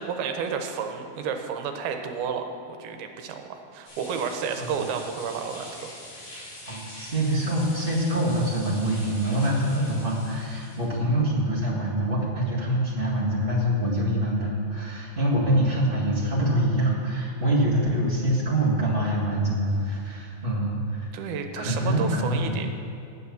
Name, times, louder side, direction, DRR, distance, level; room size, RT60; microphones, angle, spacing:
voice 1, 0.0-2.5 2.8-5.9 21.1-22.7, right 6 dB, 80° right, 5 dB, 2.7 m, -31 dB
sound 1, 3.9-10.9, left 1 dB, 65° left, 5.0 m, -44 dB
voice 2, 6.7-21.1 21.5-22.5, right 1 dB, 55° right, -7 dB, 0.6 m, -25 dB
10.5 x 8.4 x 6.9 m, 2.6 s
omnidirectional pair, 4.5 m